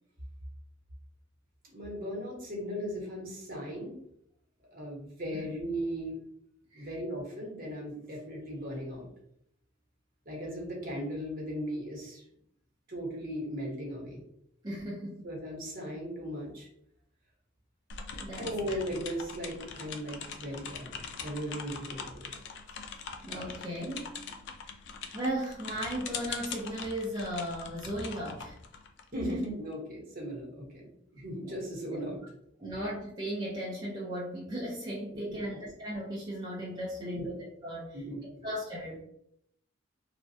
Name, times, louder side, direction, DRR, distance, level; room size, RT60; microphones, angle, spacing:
voice 1, 1.6-3.9 4.7-6.2 6.7-9.1 10.2-12.2 12.9-14.2 15.2-16.7 18.3-22.3 29.1-32.2 35.3-35.6 37.1-37.3 37.9-38.4, equal, 45° right, -2 dB, 1.1 m, -37 dB
voice 2, 14.6-15.3 18.2-18.8 23.2-24.1 25.1-28.6 31.4-31.6 32.6-37.3 37.6-38.0 38.4-39.0, equal, 20° right, -6 dB, 0.5 m, -36 dB
sound 1, 17.9-29.4, left 6 dB, 65° left, 0.4 m, -42 dB
3.1 x 2.4 x 2.6 m, 0.73 s
head